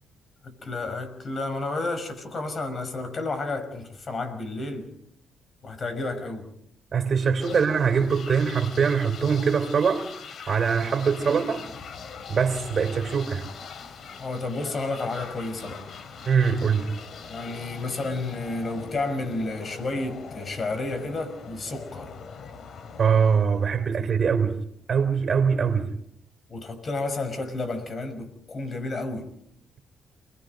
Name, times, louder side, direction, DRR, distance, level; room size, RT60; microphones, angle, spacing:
voice 1, 0.4-4.9 5.6-6.5 7.5-7.6 11.2-11.4 14.2-15.9 17.3-22.1 26.5-29.3, left 2 dB, 40° left, 5.7 m, -31 dB
voice 2, 6.9-10.0 10.5-11.7 12.3-13.4 16.3-16.9 23.0-24.6 24.9-25.9, right 6 dB, 45° right, 3.6 m, -23 dB
sound 1, 7.4-24.1, left 5 dB, 60° left, 3.1 m, -42 dB
29.0 x 21.5 x 5.3 m
cardioid pair, 90°, 0 cm